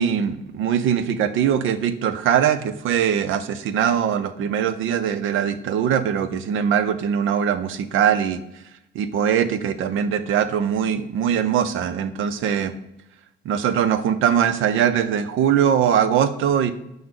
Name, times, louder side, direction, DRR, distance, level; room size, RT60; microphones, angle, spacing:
voice 1, 0.0-8.4 9.0-12.7 13.5-16.7, right 8 dB, 85° right, 12 dB, 0.6 m, -21 dB
7.8 x 5.3 x 3.8 m, 0.85 s
cardioid pair, 90°, 20 cm